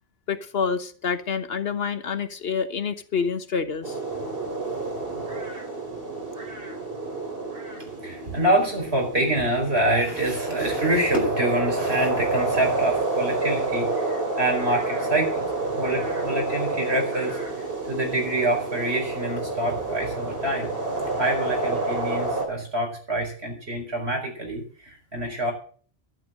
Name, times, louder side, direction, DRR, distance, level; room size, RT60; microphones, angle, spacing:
voice 1, 0.3-4.0, left 6 dB, 70° left, 11 dB, 1.4 m, -27 dB
sound 1, 3.8-22.5, right 2 dB, 60° right, 3.3 m, -29 dB
voice 2, 8.0-15.5 15.8-20.7 21.2-25.5, right 1 dB, 80° right, 2 dB, 5.1 m, -26 dB
11.5 x 10.0 x 6.5 m, 0.43 s
omnidirectional pair, 1.1 m